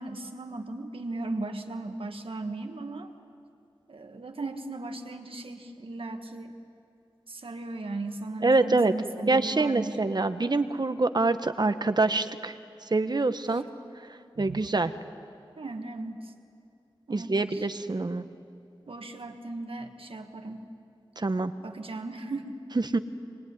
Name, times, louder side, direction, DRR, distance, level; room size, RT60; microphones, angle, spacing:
voice 1, 0.0-3.2 3.9-6.6 7.3-10.0 13.5-13.6 14.4-14.7 15.6-16.3 17.1-17.7 18.9-20.6 21.6-22.6, right 2 dB, 80° right, 5 dB, 1.7 m, -37 dB
voice 2, 8.4-8.9 9.3-12.5 12.9-13.6 14.4-14.9 17.1-18.2 21.2-21.5 22.9-23.0, right 3 dB, 50° right, 10 dB, 1.1 m, -25 dB
25.5 x 21.5 x 9.6 m, 2.5 s
wide cardioid pair, 70°, 9 cm